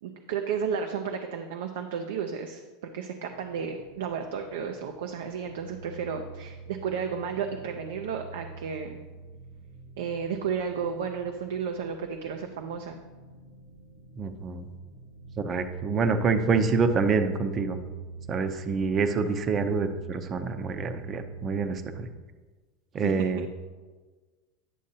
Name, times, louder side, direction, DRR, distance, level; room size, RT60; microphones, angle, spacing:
voice 1, 0.0-2.6 2.9-9.0 10.0-13.0 23.0-23.1, right 6 dB, 80° right, 4 dB, 0.5 m, -33 dB
sound 1, 3.3-22.2, right 4 dB, 65° right, 1.2 m, -43 dB
voice 2, 14.2-14.6 15.4-17.8 18.3-22.1 22.9-23.5, right 4 dB, 35° right, 9 dB, 0.6 m, -27 dB
10.0 x 6.4 x 2.8 m, 1.3 s
supercardioid pair, 120°, 0 cm